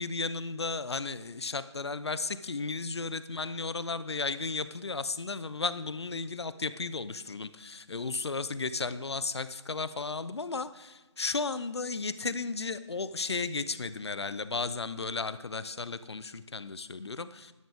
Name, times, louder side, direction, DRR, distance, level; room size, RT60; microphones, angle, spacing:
voice 1, 0.0-17.5, left 4 dB, 60° left, 14 dB, 0.7 m, -34 dB
12.5 x 11.0 x 3.5 m, 1.2 s
figure-of-eight pair, 155°, 15 cm